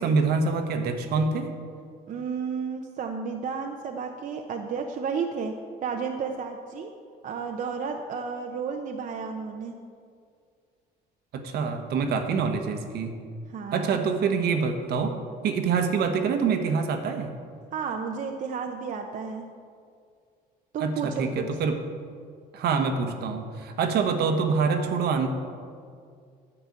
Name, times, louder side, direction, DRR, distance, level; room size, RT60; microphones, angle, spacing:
voice 1, 0.0-1.5 11.3-13.1 13.7-15.1 15.4-17.3 20.8-21.8 22.5-25.3, right 5 dB, 70° right, 5 dB, 1.2 m, -25 dB
voice 2, 2.1-6.9 7.2-9.8 13.5-14.0 17.7-19.5 20.7-21.6, right 5 dB, 50° right, 3 dB, 0.8 m, -32 dB
10.0 x 6.1 x 8.5 m, 2.2 s
cardioid pair, 110°, 17 cm